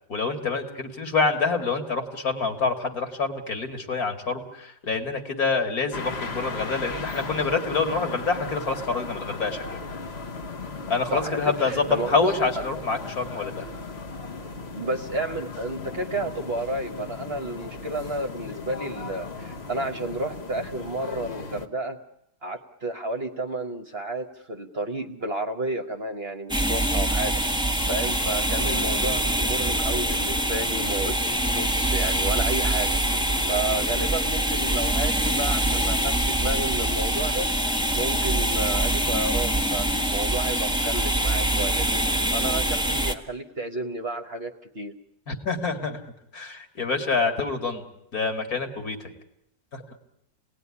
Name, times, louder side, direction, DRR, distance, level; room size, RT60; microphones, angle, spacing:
voice 1, 0.1-9.8 10.9-13.7 37.7-38.0 45.3-46.0 46.3-47.8 48.1-49.1 49.7-49.8, left 4 dB, 60° left, 6 dB, 2.8 m, -27 dB
sound 1, 5.9-21.7, left 4 dB, 40° left, 1.5 m, -37 dB
voice 2, 11.1-12.3 14.4-22.0 22.4-27.4 27.9-33.0 33.5-41.9 42.3-44.9, right 2 dB, 40° right, 7 dB, 1.2 m, -31 dB
sound 2, 26.5-43.1, right 1 dB, 5° right, 1.4 m, -24 dB
27.5 x 18.5 x 9.8 m, 0.83 s
omnidirectional pair, 1.8 m